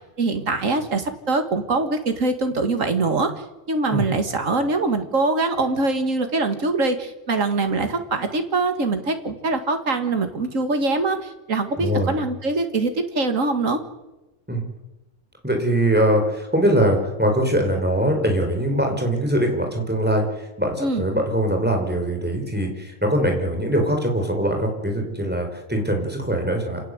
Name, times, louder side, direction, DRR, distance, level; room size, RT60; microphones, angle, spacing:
voice 1, 0.2-3.3 3.7-13.8 20.8-21.0, right 3 dB, 85° right, 7 dB, 2.3 m, -23 dB
voice 2, 11.8-12.2 14.5-14.6 15.4-26.8, right 1 dB, 5° right, 2 dB, 4.7 m, -22 dB
27.5 x 18.0 x 7.9 m, 1.1 s
omnidirectional pair, 1.3 m